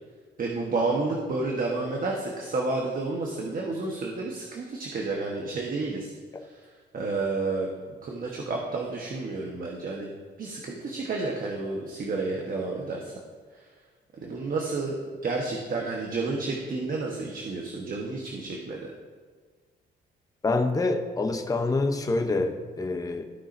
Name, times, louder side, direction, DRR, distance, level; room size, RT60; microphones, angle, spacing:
voice 1, 0.4-6.6 6.9-7.7 8.0-10.1 10.4-13.1 13.5-13.6 14.1-15.0 15.2-18.9, right 3 dB, 45° right, -1 dB, 1.2 m, -30 dB
voice 2, 20.4-23.2, left 3 dB, 15° left, 4 dB, 0.7 m, -26 dB
15.0 x 5.5 x 2.6 m, 1.5 s
cardioid pair, 90°, 20 cm